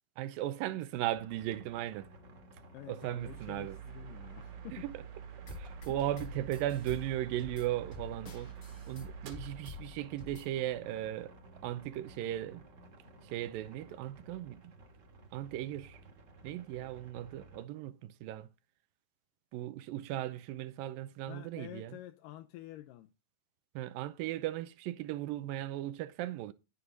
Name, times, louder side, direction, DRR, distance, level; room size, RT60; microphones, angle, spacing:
voice 1, 0.2-2.1 2.9-3.8 4.7-4.9 5.5-8.5 8.9-11.3 11.6-12.7 13.2-14.7 15.3-16.0 16.4-18.5 19.5-22.0 23.8-26.5, right 13 dB, 90° right, 2.5 m, -37 dB
sound 1, 1.1-17.6, right 2 dB, 45° right, 1.5 m, -55 dB
voice 2, 2.7-4.9 21.3-23.1, left 14 dB, 80° left, 2.3 m, -48 dB
sound 2, 3.2-10.6, right 9 dB, 70° right, 3.1 m, -48 dB
sound 3, 5.5-10.5, left 5 dB, 45° left, 1.1 m, -49 dB
11.0 x 8.5 x 4.0 m
omnidirectional pair, 3.9 m